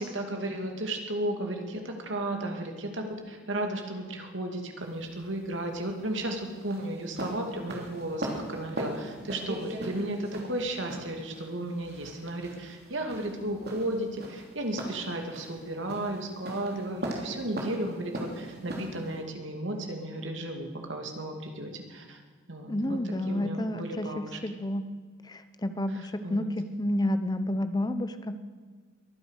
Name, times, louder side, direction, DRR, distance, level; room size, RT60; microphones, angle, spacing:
voice 1, 0.0-22.2 22.5-23.0 23.3-24.4 26.2-26.5, right 1 dB, 70° right, 3 dB, 2.5 m, -34 dB
sound 1, 4.8-19.2, right 1 dB, 55° right, 3.1 m, -39 dB
voice 2, 22.7-24.9 25.2-28.4, left 1 dB, 20° left, 11 dB, 0.8 m, -30 dB
22.5 x 9.9 x 6.5 m, 1.5 s
head